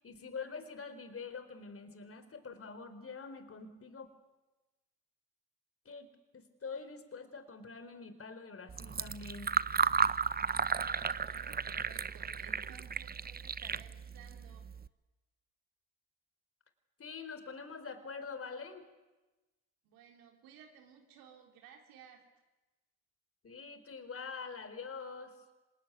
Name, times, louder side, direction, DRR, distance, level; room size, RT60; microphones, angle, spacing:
voice 1, 0.0-4.1 5.8-6.1 6.3-9.6 17.0-18.9 23.4-25.4, left 5 dB, 40° left, 10 dB, 4.2 m, -45 dB
Fill (with liquid), 8.7-14.9, right 6 dB, 25° right, 0.9 m, -34 dB
voice 2, 10.6-14.6 19.8-22.2, right 8 dB, 80° right, 2 dB, 3.8 m, -57 dB
26.5 x 20.5 x 9.4 m, 1.1 s
supercardioid pair, 60°, 34 cm